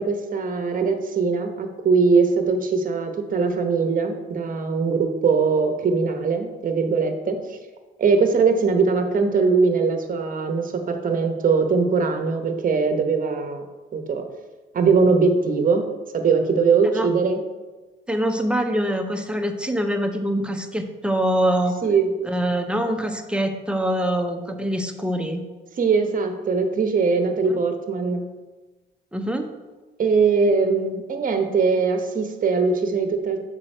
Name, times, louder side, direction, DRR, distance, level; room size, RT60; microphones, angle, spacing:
voice 1, 0.0-7.4 8.0-13.6 13.9-14.2 14.7-15.8 16.1-17.4 21.8-22.1 25.8-28.3 30.0-33.4, right 4 dB, 45° right, 6 dB, 0.9 m, -21 dB
voice 2, 18.1-21.8 22.2-25.4 29.1-29.5, right 1 dB, 5° right, 5 dB, 0.7 m, -24 dB
6.0 x 5.0 x 4.4 m, 1.2 s
cardioid pair, 90°, 20 cm